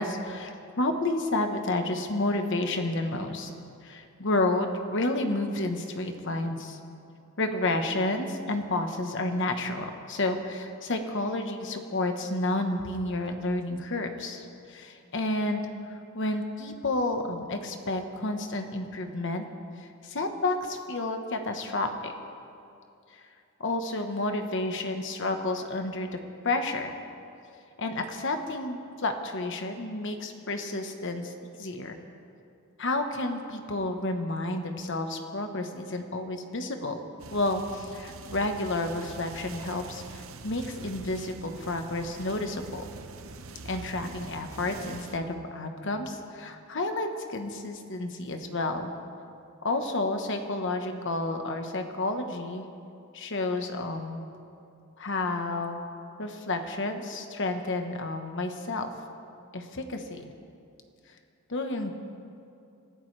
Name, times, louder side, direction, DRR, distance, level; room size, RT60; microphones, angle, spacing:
voice 1, 0.0-3.5 3.8-6.8 7.4-15.6 15.9-19.4 19.8-22.1 23.6-26.2 26.4-26.9 27.8-31.3 31.6-32.0 32.8-37.0 37.3-42.9 43.7-48.9 49.6-52.6 53.1-54.2 55.0-55.9 56.2-58.9 59.5-60.3 61.5-61.9, left 2 dB, 60° left, 5 dB, 1.2 m, -30 dB
sound 1, 37.2-45.2, right 3 dB, 65° right, 0.8 m, -44 dB
28.0 x 15.0 x 3.3 m, 2.5 s
head